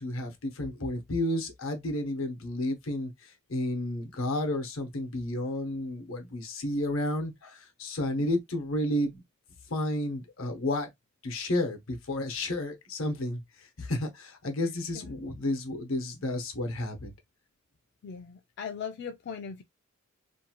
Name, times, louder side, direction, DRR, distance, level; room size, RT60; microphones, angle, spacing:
voice 1, 0.0-9.2 9.7-10.9 11.2-13.4 13.8-17.1, left 1 dB, 80° left, 0.9 m, -31 dB
voice 2, 18.0-19.6, left 6 dB, 50° left, 0.4 m, -39 dB
2.7 x 2.3 x 2.8 m
head